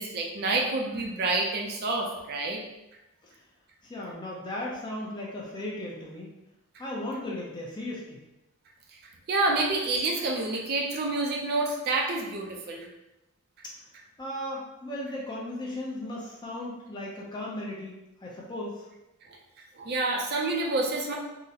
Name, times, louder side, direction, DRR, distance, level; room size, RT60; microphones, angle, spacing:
voice 1, 0.0-2.6 9.3-12.9 19.3-19.4 19.7-21.1, right 2 dB, 45° right, 0 dB, 0.4 m, -28 dB
voice 2, 3.8-6.3 6.8-8.2 14.2-18.9, left 1 dB, 20° left, -4 dB, 0.5 m, -36 dB
3.7 x 2.1 x 2.8 m, 0.96 s
head